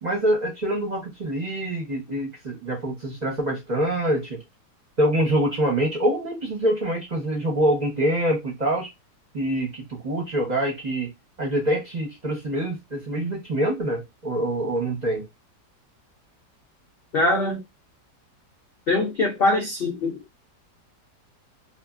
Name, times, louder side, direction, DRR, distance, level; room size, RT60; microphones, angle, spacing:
voice 1, 0.0-4.4 5.0-8.9 9.3-11.1 11.4-15.3, right 1 dB, 35° right, 0.8 m, -25 dB
voice 2, 17.1-17.6 18.9-20.2, left 2 dB, 75° left, 0.5 m, -22 dB
2.6 x 2.5 x 2.3 m
omnidirectional pair, 1.8 m